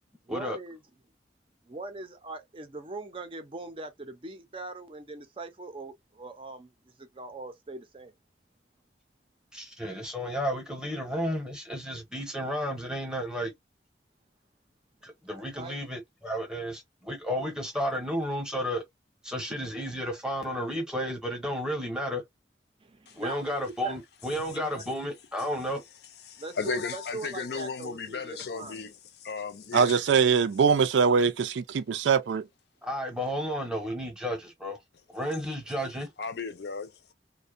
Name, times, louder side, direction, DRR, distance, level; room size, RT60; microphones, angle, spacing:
voice 1, 0.3-0.8 1.7-6.7 7.0-8.1 15.5-15.8 19.5-19.6 22.8-24.0 24.8-24.9 26.4-28.8, right 2 dB, 30° right, 0.4 m, -41 dB
voice 2, 9.5-13.5 15.0-18.8 19.2-22.2 23.2-25.8 32.8-34.8 35.1-36.1, equal, 5° right, 0.8 m, -32 dB
voice 3, 24.5-24.9 26.3-30.0 36.2-37.1, left 5 dB, 65° left, 0.5 m, -36 dB
voice 4, 29.7-32.4, right 6 dB, 85° right, 0.4 m, -22 dB
2.6 x 2.1 x 2.4 m
head